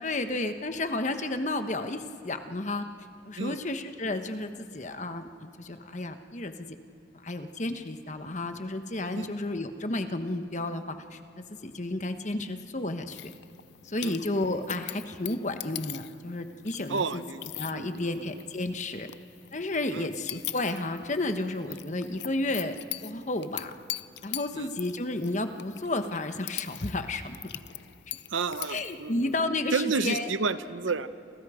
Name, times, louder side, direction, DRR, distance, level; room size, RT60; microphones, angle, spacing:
voice 1, 0.0-2.8 3.2-6.8 7.2-13.3 13.8-17.2 17.6-19.1 19.5-22.8 23.0-23.7 24.2-27.4 28.7-30.3, left 2 dB, 40° left, 8 dB, 1.2 m, -32 dB
sound 1, 13.1-29.4, left 14 dB, 60° left, 0.5 m, -42 dB
voice 2, 16.9-18.4 19.9-20.1 21.7-21.8 24.5-24.7 28.3-29.3 29.7-31.1, right 4 dB, 80° right, 13 dB, 0.8 m, -31 dB
29.0 x 27.0 x 5.0 m, 2.5 s
head